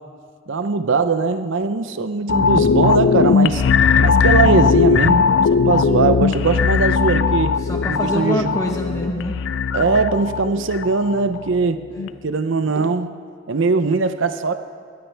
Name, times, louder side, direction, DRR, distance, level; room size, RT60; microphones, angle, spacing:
voice 1, 0.5-3.6 4.0-7.5 7.9-8.5 9.7-11.8 12.2-13.1 13.5-14.5, right 4 dB, 75° right, 9 dB, 0.6 m, -20 dB
sound 1, 2.3-11.6 12.0-12.1, left 5 dB, 65° left, 0.4 m, -18 dB
voice 2, 7.6-9.4 11.9-12.2, equal, 15° left, 1 dB, 1.3 m, -26 dB
22.5 x 18.0 x 3.4 m, 2.1 s
head